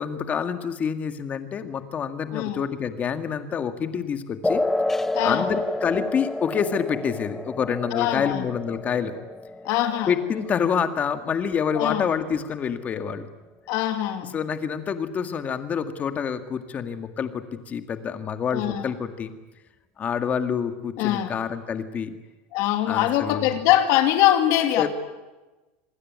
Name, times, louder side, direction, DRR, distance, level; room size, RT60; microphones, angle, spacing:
voice 1, 0.0-4.6 5.2-9.1 10.1-13.3 14.3-19.3 20.0-22.1 22.9-23.5 24.8-24.9, left 7 dB, 25° left, 8 dB, 1.9 m, -27 dB
sound 1, 4.4-11.5, left 2 dB, 5° left, 0.9 m, -30 dB
voice 2, 5.1-5.5 7.9-8.5 9.6-10.2 11.7-12.0 13.7-14.4 18.5-18.9 21.0-21.4 22.5-24.9, left 12 dB, 50° left, 8 dB, 2.5 m, -23 dB
26.5 x 21.0 x 9.6 m, 1.1 s
supercardioid pair, 155°, 6 cm